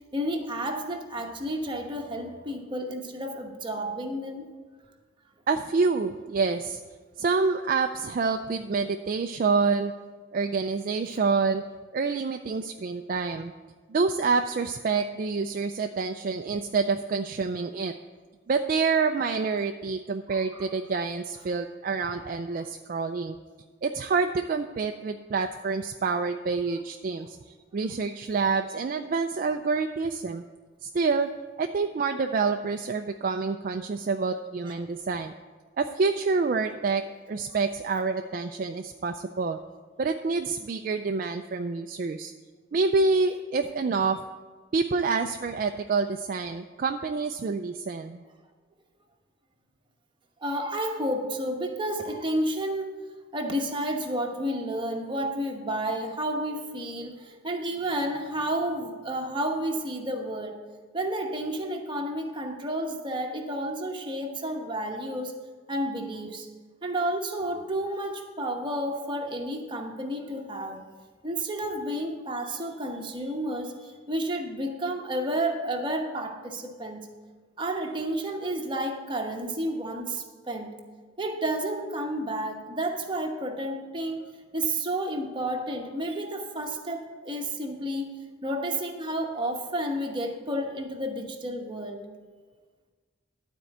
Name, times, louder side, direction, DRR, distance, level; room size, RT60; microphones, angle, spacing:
voice 1, 0.1-4.5 20.3-20.7 22.0-22.3 34.7-34.8 50.4-52.9 53.3-60.6 60.9-65.3 65.7-66.5 66.8-70.8 71.2-77.1 77.6-80.7 81.2-84.2 84.5-88.1 88.4-92.0, right 1 dB, 25° right, 2 dB, 1.0 m, -31 dB
voice 2, 5.5-6.8 7.2-9.9 10.3-11.6 11.9-13.5 13.9-17.9 18.5-23.4 23.8-27.4 27.7-30.4 30.8-31.3 31.6-35.3 35.8-37.0 37.3-39.6 40.0-42.3 42.7-44.2 44.7-48.2, right 4 dB, 45° right, 6 dB, 0.3 m, -27 dB
12.0 x 4.4 x 7.8 m, 1.4 s
head